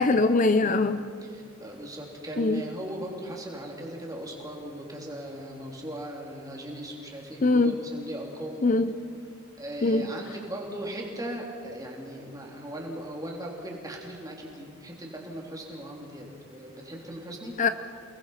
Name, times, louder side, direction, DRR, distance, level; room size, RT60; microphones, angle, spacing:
voice 1, 0.0-1.0 2.4-2.6 7.4-7.7 8.6-8.9 9.8-10.1 17.6-17.7, left 3 dB, 35° left, 11 dB, 0.6 m, -22 dB
voice 2, 1.2-8.7 9.6-17.5, right 1 dB, 15° right, -1 dB, 3.6 m, -38 dB
29.5 x 20.0 x 5.8 m, 2.4 s
head